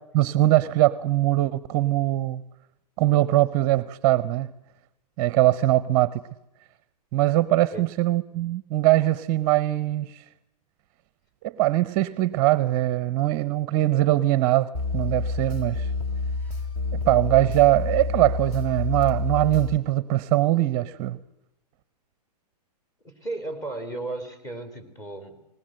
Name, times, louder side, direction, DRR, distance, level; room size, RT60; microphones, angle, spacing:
voice 1, 0.1-2.4 3.0-4.5 5.2-6.2 7.1-10.2 11.4-15.9 17.1-21.2, right 15 dB, 35° right, 17 dB, 0.8 m, -22 dB
sound 1, 14.7-19.8, left 3 dB, 35° left, 4.3 m, -29 dB
voice 2, 23.0-25.5, right 2 dB, 15° left, 7 dB, 3.5 m, -35 dB
20.0 x 20.0 x 7.8 m, 0.89 s
hypercardioid pair, 140°, 21 cm